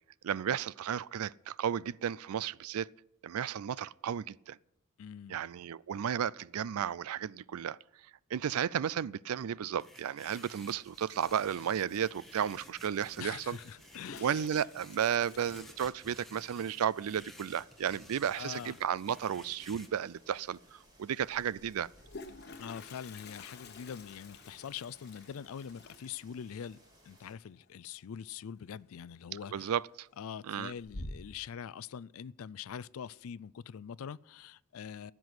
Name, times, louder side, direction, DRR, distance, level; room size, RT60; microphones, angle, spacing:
voice 1, 0.2-2.9 3.2-4.6 5.3-7.8 8.3-13.6 14.2-21.9 29.5-30.1 30.5-30.7, right 8 dB, 85° right, 0.4 m, -33 dB
voice 2, 5.0-5.4 13.2-14.4 18.3-18.8 22.6-26.8 27.1-29.7 30.2-35.1, left 7 dB, 75° left, 0.4 m, -44 dB
sound 1, 9.8-19.9, left 1 dB, ahead, 1.0 m, -55 dB
sound 2, 10.8-27.4, right 1 dB, 20° right, 4.7 m, -62 dB
Toilet flush, 13.7-16.5 16.8-16.9 17.2-17.3 17.5-17.9 19.6-19.7 20.1-20.2 21.7-28.4 28.7-29.2 29.6-30.1 30.5-31.5, left 2 dB, 50° left, 1.1 m, -50 dB
15.5 x 6.1 x 9.6 m
head